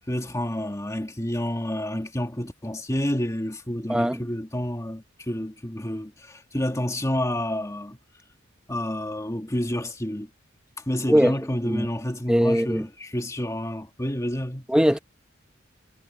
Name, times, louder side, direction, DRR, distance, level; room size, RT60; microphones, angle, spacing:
voice 1, 0.1-8.0 8.7-10.3 10.9-14.7, left 1 dB, 15° left, 1.8 m, -29 dB
voice 2, 3.9-4.2 11.1-11.3 11.7-11.9 12.3-12.9 14.7-15.0, equal, 5° right, 1.0 m, -20 dB
head